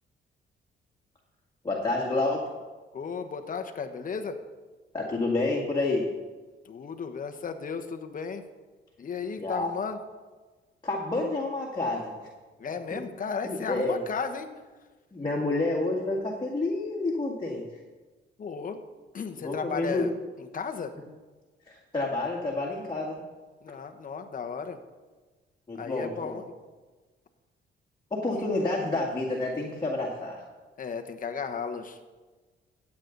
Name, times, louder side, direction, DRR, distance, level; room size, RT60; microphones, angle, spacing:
voice 1, 1.6-2.5 4.9-6.1 9.4-9.7 10.8-12.1 12.9-13.0 13.4-14.0 15.1-17.7 19.4-20.1 21.9-23.2 25.7-26.4 28.1-30.4, left 2 dB, 20° left, -4 dB, 2.1 m, -29 dB
voice 2, 2.9-4.4 6.6-8.4 9.0-10.0 12.6-14.5 18.4-18.8 19.1-20.1 20.4-20.9 23.6-24.8 25.8-26.5 28.3-28.4 28.8-29.0 30.8-32.0, left 5 dB, 45° left, 7 dB, 1.1 m, -34 dB
14.0 x 8.6 x 4.0 m, 1.3 s
cardioid pair, 90°, 20 cm